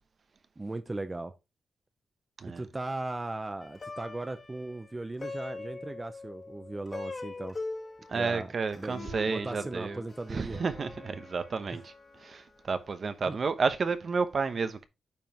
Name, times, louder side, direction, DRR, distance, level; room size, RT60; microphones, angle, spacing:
voice 1, 0.6-1.4 2.5-7.6 8.1-10.6 11.7-11.8 13.3-13.4, right 2 dB, 20° right, 0.6 m, -38 dB
Plucked string instrument, 3.6-13.0, left 3 dB, 30° left, 1.9 m, -43 dB
voice 2, 8.1-10.0 10.3-11.9 12.2-14.9, right 4 dB, 45° right, 0.9 m, -31 dB
9.1 x 5.4 x 2.9 m
cardioid pair, 115°, 0 cm